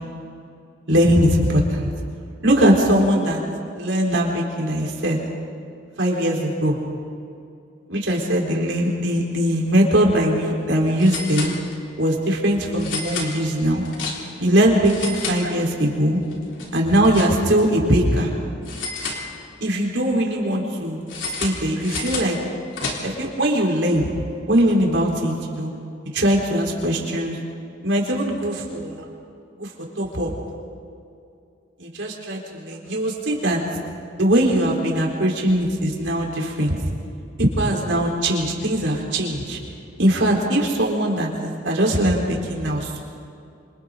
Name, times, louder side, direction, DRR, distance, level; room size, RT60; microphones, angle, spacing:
voice 1, 0.9-1.9 2.4-3.4 3.7-5.2 6.0-6.8 7.9-11.5 12.0-13.8 14.4-16.2 16.7-18.3 19.6-21.0 21.4-22.4 23.0-24.1 24.5-25.7 26.1-27.4 27.8-29.0 29.6-29.7 30.0-30.3 31.8-33.6 34.2-36.8 37.4-39.6 40.0-43.0, equal, 75° right, -1 dB, 4.2 m, -20 dB
sound 1, 10.0-10.1 10.3-10.4 11.0-12.0 12.8-14.5 14.8-16.0 16.3-17.7 18.6-19.8 21.1-23.3, left 3 dB, 90° left, 3.6 m, -32 dB
29.0 x 25.5 x 4.0 m, 2.5 s
head